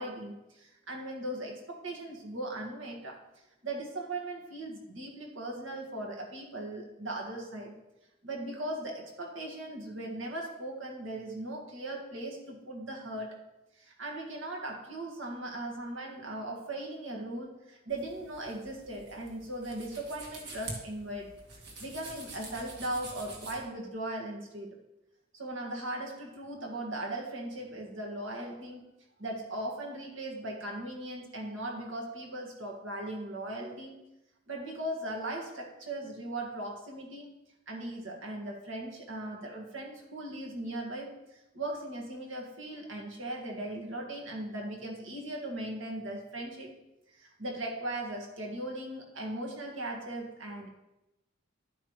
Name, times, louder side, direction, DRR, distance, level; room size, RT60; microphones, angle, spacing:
voice 1, 0.0-3.2 3.6-7.7 8.2-13.4 13.8-21.4 21.8-24.8 25.3-28.9 29.2-34.0 34.5-37.3 37.7-46.7 47.1-50.7, right 1 dB, 65° right, 0 dB, 2.0 m, -38 dB
sound 1, 17.9-23.7, right 2 dB, 50° right, 2.1 m, -46 dB
11.0 x 9.1 x 3.3 m, 0.92 s
head